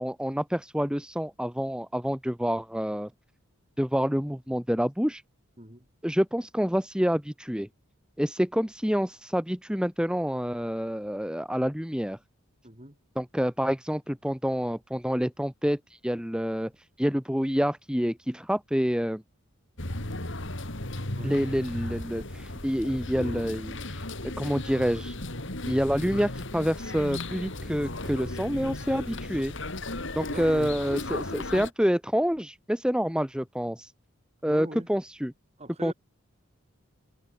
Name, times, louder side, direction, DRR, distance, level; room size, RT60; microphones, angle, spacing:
voice 1, 0.0-3.1 3.8-5.2 6.0-7.7 8.2-12.2 13.2-16.7 17.0-19.2 21.2-24.0 24.4-25.2 25.7-29.5 30.2-33.9 34.4-35.3 35.8-35.9, equal, 5° right, 1.8 m, -27 dB
voice 2, 12.6-13.0 21.2-21.4 30.2-31.4 34.5-34.9 35.6-35.9, right 1 dB, 30° right, 4.5 m, -43 dB
sound 1, 19.8-31.7, left 2 dB, 55° left, 3.2 m, -35 dB
head